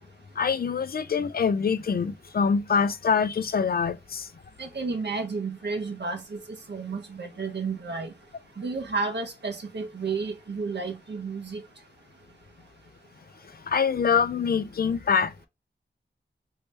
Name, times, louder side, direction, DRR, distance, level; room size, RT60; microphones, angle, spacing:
voice 1, 0.4-4.2 13.7-15.5, left 6 dB, 50° left, 0.4 m, -25 dB
voice 2, 4.6-6.4 6.7-8.1 8.6-11.6, right 4 dB, 65° right, 0.8 m, -32 dB
3.1 x 2.7 x 3.3 m
wide cardioid pair, 60°, 19 cm